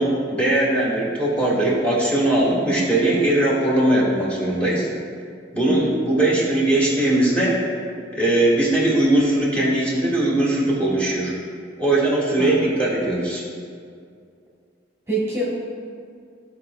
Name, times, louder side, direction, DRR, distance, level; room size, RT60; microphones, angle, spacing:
voice 1, 0.0-4.9 5.5-7.6 8.1-11.3 11.8-13.4, right 1 dB, 5° left, -6 dB, 1.6 m, -20 dB
voice 2, 12.4-12.7 15.1-15.4, right 1 dB, 15° right, -7 dB, 1.3 m, -25 dB
13.5 x 4.8 x 2.3 m, 2.3 s
head